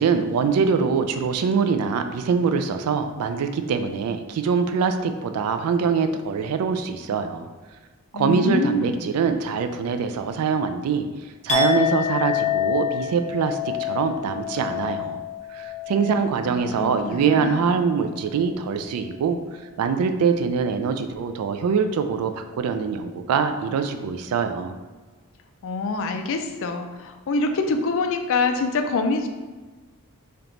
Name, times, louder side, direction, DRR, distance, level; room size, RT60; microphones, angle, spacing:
voice 1, 0.0-7.5 8.1-11.1 11.4-15.2 15.5-19.4 19.8-24.7, right 5 dB, 85° right, 8 dB, 0.3 m, -23 dB
voice 2, 8.1-9.0 16.4-17.8 25.6-29.3, left 3 dB, 65° left, 6 dB, 0.4 m, -25 dB
Chink clink, 11.5-17.4 17.7-18.1, left 9 dB, 35° left, 0.8 m, -28 dB
3.5 x 2.9 x 3.7 m, 1.3 s
head